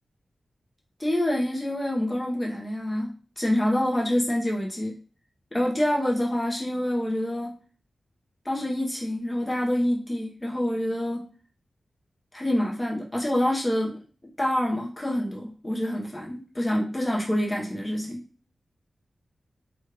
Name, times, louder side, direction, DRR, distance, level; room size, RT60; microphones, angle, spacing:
voice 1, 1.0-5.0 5.5-7.5 8.4-11.3 12.3-14.0 14.4-18.2, left 1 dB, 20° left, -2 dB, 0.9 m, -26 dB
3.1 x 2.4 x 3.3 m, 0.39 s
wide cardioid pair, 95°, 0 cm